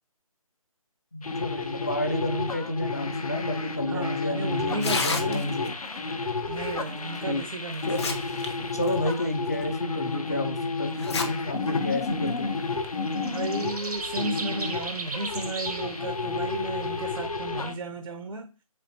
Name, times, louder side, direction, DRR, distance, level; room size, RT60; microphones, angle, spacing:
voice 1, 1.1-5.7 7.3-7.4 7.9-8.0 8.7-12.5, left 1 dB, 25° left, 0.4 m, -30 dB
sound 1, 1.2-17.7, left 3 dB, 80° left, 0.8 m, -31 dB
voice 2, 3.8-5.5 6.5-8.3 13.2-18.6, right 2 dB, 60° right, 0.5 m, -34 dB
Tearing, 4.7-5.7 7.2-7.3 7.7-8.5 8.8-8.9 9.6-9.7 10.9-11.3 11.7-11.8 12.6-12.9, left 4 dB, 50° left, 0.8 m, -30 dB
sound 2, 11.1-11.4 11.9-12.0 12.2-12.7 13.1-17.2, right 3 dB, 90° right, 0.9 m, -37 dB
4.3 x 3.4 x 2.7 m
figure-of-eight pair, 160°, 19 cm